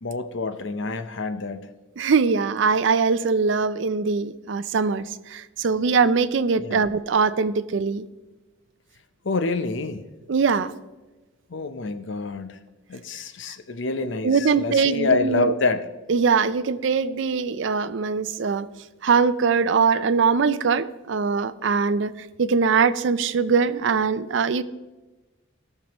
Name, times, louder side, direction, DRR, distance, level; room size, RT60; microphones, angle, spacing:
voice 1, 0.0-1.6 6.6-6.8 9.2-10.0 11.5-12.6 12.9-15.9, left 3 dB, 65° left, 10 dB, 0.6 m, -27 dB
voice 2, 2.0-8.0 10.3-10.7 14.2-15.5 16.1-18.7 19.0-24.6, right 5 dB, 60° right, 14 dB, 0.4 m, -22 dB
17.5 x 6.7 x 3.0 m, 1.2 s
head